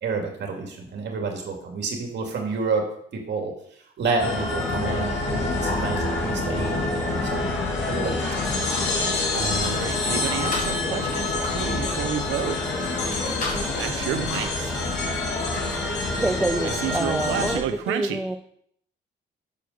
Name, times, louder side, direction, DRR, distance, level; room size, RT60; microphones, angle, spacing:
voice 1, 0.0-3.5 4.0-6.8 7.3-7.5 7.9-8.3, right 4 dB, 60° right, 2 dB, 2.4 m, -29 dB
sound 1, 4.2-17.6, left 2 dB, 65° left, 2.5 m, -26 dB
sound 2, 7.4-7.6 8.4-8.5 8.9-9.6 10.2-15.9 16.6-16.7, left 2 dB, 40° left, 2.6 m, -38 dB
voice 2, 9.3-11.3 11.5-12.6 13.8-14.7 16.8-18.2, right 9 dB, 90° right, 8 dB, 0.9 m, -30 dB
voice 3, 16.2-18.4, right 1 dB, 5° right, 7 dB, 0.5 m, -27 dB
6.8 x 5.0 x 6.5 m, 0.66 s
cardioid pair, 90°, 20 cm